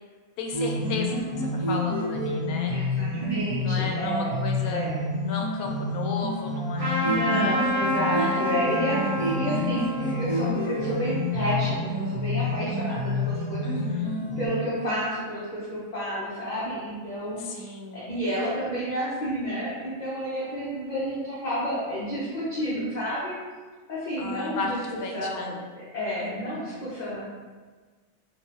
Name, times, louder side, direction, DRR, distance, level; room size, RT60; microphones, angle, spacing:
voice 1, 0.4-2.8 3.6-4.8 5.2-7.2 8.1-8.5 8.8-9.2 13.6-14.3 17.4-18.1 24.2-25.6 26.2-26.6, left 3 dB, 90° left, 2 dB, 1.0 m, -35 dB
sound 1, 0.5-14.5, left 1 dB, 20° right, 0.9 m, -28 dB
voice 2, 2.7-4.4 4.7-5.0 7.0-13.7 14.4-23.3 23.9-24.8 25.1-25.6 25.9-27.2, equal, 45° left, -9 dB, 0.6 m, -30 dB
Trumpet, 6.8-11.8, left 1 dB, 65° right, 1.8 m, -30 dB
4.0 x 2.5 x 2.8 m, 1.4 s
omnidirectional pair, 1.5 m